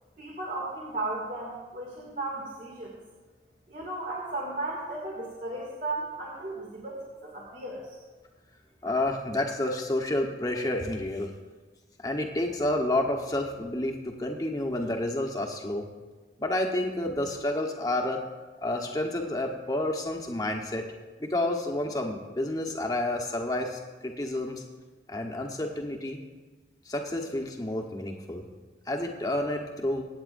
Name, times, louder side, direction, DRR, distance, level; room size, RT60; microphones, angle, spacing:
voice 1, 0.2-3.0 3.7-8.0, right 2 dB, 50° right, -4 dB, 2.4 m, -35 dB
voice 2, 8.8-11.3 12.0-15.9 16.4-18.2 18.6-20.8 21.2-24.6 25.1-26.2 26.9-28.5 28.9-30.0, left 1 dB, 20° left, 2 dB, 1.1 m, -30 dB
25.0 x 8.7 x 2.6 m, 1.3 s
head